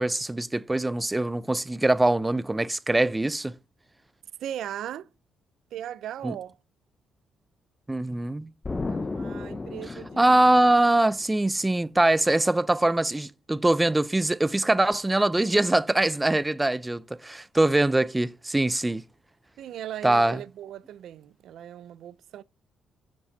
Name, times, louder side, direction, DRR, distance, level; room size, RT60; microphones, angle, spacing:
voice 1, 0.0-3.6 6.2-6.3 7.9-8.5 10.2-19.0 20.0-20.4, right 2 dB, 15° right, 0.4 m, -23 dB
voice 2, 4.4-5.1 5.7-6.6 8.9-10.2 19.6-22.4, right 11 dB, 75° right, 0.4 m, -38 dB
Explosion, 8.6-11.3, left 3 dB, 25° left, 0.7 m, -34 dB
7.8 x 5.3 x 7.1 m
cardioid pair, 90°, 0 cm